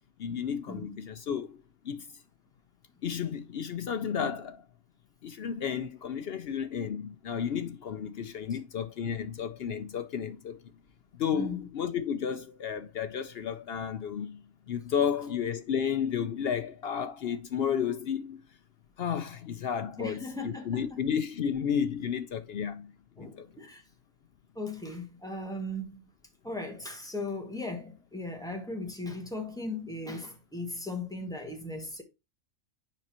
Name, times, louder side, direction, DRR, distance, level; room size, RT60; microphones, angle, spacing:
voice 1, 0.2-1.6 1.8-2.1 3.0-4.6 5.2-10.6 11.2-18.4 19.0-22.9 23.2-23.5, left 8 dB, 60° left, 0.7 m, -32 dB
voice 2, 11.3-11.7 20.0-21.0 23.2-23.8 24.5-26.0 26.4-32.0, left 2 dB, 5° left, 1.5 m, -37 dB
7.2 x 5.5 x 2.9 m
omnidirectional pair, 1.4 m